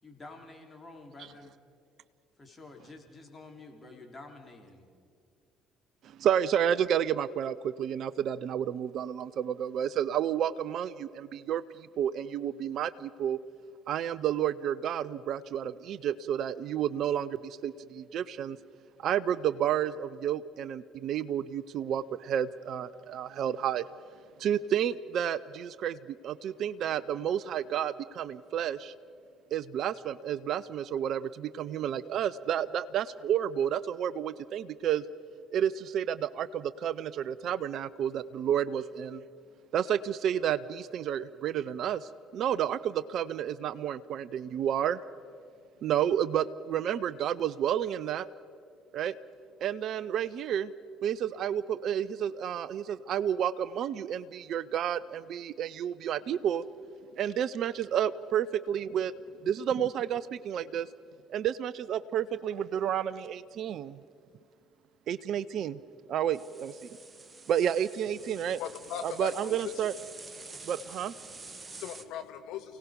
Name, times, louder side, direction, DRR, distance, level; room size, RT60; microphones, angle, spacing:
voice 1, 0.0-1.5 2.4-4.9, left 2 dB, 25° left, 2 dB, 3.7 m, -49 dB
voice 2, 6.0-13.4 13.9-18.6 19.0-23.9 24.4-28.9 29.5-35.0 35.5-39.2 39.7-45.0 45.8-48.3 48.9-49.2 49.6-50.7 51.0-56.6 57.2-59.1 59.4-60.9 61.3-64.0 65.1-65.8 66.1-67.0 67.5-68.6 69.0-69.9 70.6-71.1, right 9 dB, 55° right, 17 dB, 0.5 m, -31 dB
sound 1, 66.3-72.0, right 3 dB, 25° right, 1.6 m, -48 dB
voice 3, 68.5-69.8 70.4-70.7 71.3-72.8, left 9 dB, 60° left, 10 dB, 0.8 m, -40 dB
29.5 x 18.0 x 5.2 m, 2.3 s
figure-of-eight pair, 55°, 0 cm